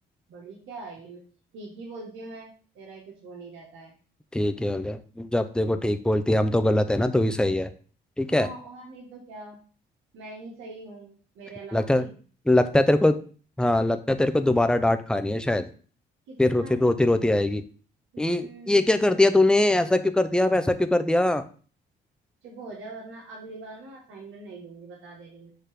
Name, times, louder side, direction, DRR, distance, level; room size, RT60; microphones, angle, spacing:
voice 1, 0.3-1.2 1.5-3.9 5.6-5.9 8.3-9.6 10.1-12.1 16.3-16.9 18.1-19.3 22.4-25.5, right 3 dB, 85° right, -3 dB, 1.7 m, -43 dB
voice 2, 4.3-7.7 8.2-8.5 11.7-12.0 12.5-13.2 13.6-15.6 16.4-17.6 18.2-21.4, left 1 dB, 5° left, 10 dB, 0.6 m, -22 dB
6.8 x 3.0 x 5.1 m, 0.41 s
cardioid pair, 80°, 20 cm